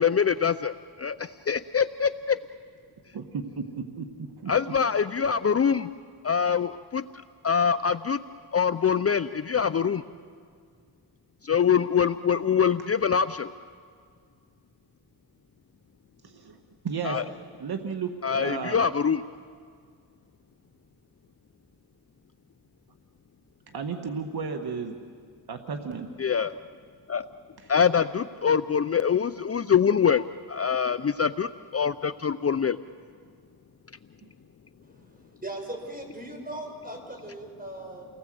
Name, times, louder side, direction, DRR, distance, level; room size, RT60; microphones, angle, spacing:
voice 1, 0.0-2.4 4.5-5.9 6.2-7.0 7.4-8.2 8.5-10.0 11.4-13.5 17.0-17.2 18.2-19.2 26.2-26.5 27.1-27.3 27.7-32.8, left 7 dB, 35° left, 13 dB, 0.6 m, -24 dB
voice 2, 3.1-4.1 4.4-4.5 16.2-16.6 16.8-17.2 17.6-18.8 23.7-25.0 25.5-26.1 27.6-27.7, right 5 dB, 60° right, 5 dB, 1.7 m, -33 dB
voice 3, 34.8-38.1, right 1 dB, 20° right, 3 dB, 6.4 m, -39 dB
30.0 x 19.0 x 7.8 m, 2.1 s
cardioid pair, 65°, 41 cm